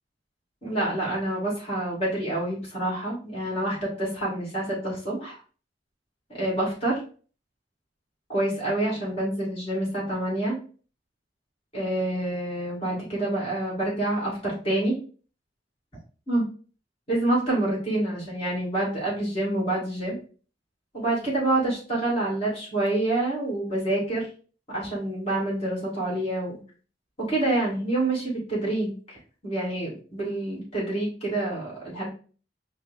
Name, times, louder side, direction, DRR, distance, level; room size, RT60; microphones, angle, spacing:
voice 1, 0.6-5.4 6.3-7.0 8.3-10.6 11.7-15.0 16.3-16.4 17.1-20.2 20.9-24.3 24.7-26.6 27.2-32.1, right 1 dB, 35° left, -4 dB, 2.2 m, -27 dB
5.2 x 2.3 x 3.4 m, 0.39 s
head